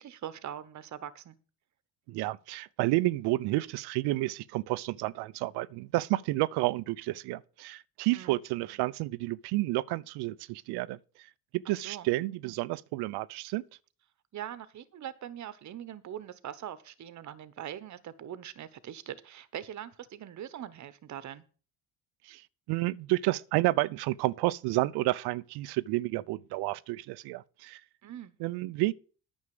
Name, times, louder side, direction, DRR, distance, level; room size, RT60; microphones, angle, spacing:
voice 1, 0.0-1.4 8.1-8.4 11.6-12.1 14.3-21.4 28.0-28.3, right 10 dB, 45° right, 1.1 m, -42 dB
voice 2, 2.1-11.0 11.5-13.6 22.3-22.4 22.7-27.8 28.4-28.9, right 19 dB, 85° right, 0.7 m, -30 dB
9.8 x 6.4 x 7.7 m
cardioid pair, 95°, 38 cm